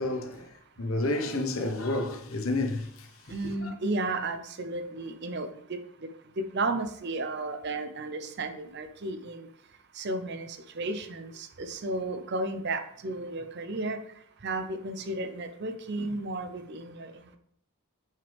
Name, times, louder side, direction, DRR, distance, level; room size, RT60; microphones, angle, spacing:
voice 1, 0.0-3.7, left 2 dB, 70° left, 1.0 m, -31 dB
voice 2, 3.3-6.1 6.5-9.5 10.0-14.0 14.4-17.4, right 2 dB, 50° right, 0.7 m, -33 dB
7.6 x 6.1 x 3.5 m
head